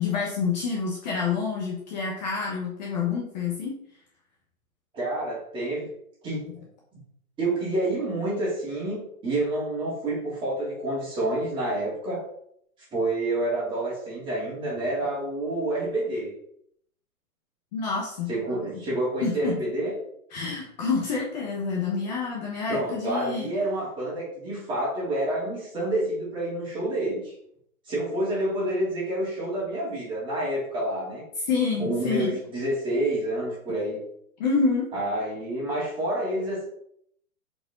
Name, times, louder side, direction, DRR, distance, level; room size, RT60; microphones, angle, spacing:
voice 1, 0.0-3.8 17.7-18.3 19.2-19.6 20.3-23.5 31.5-32.4 34.4-34.9, left 5 dB, 30° left, -2 dB, 1.2 m, -27 dB
voice 2, 4.9-5.9 6.2-6.4 7.4-12.2 12.9-16.3 18.3-19.9 22.7-27.3 27.8-31.2 31.8-34.0 34.9-36.6, right 1 dB, 10° right, -7 dB, 3.0 m, -28 dB
7.9 x 5.1 x 3.8 m, 0.69 s
hypercardioid pair, 165°, 42 cm